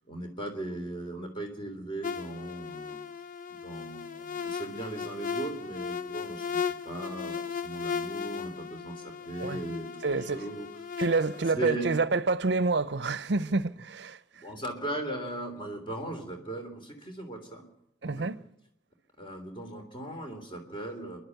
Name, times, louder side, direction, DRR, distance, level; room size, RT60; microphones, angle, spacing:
voice 1, 0.1-3.0 3.5-6.6 6.8-10.7 11.6-12.0 14.4-17.6 18.1-18.4 19.2-21.2, right 2 dB, 25° left, 3.3 m, -38 dB
sound 1, 2.0-11.5, left 6 dB, 45° left, 0.7 m, -36 dB
voice 2, 10.0-10.5 11.0-14.2 18.0-18.4, right 3 dB, 65° right, 0.7 m, -27 dB
29.0 x 11.5 x 8.0 m
head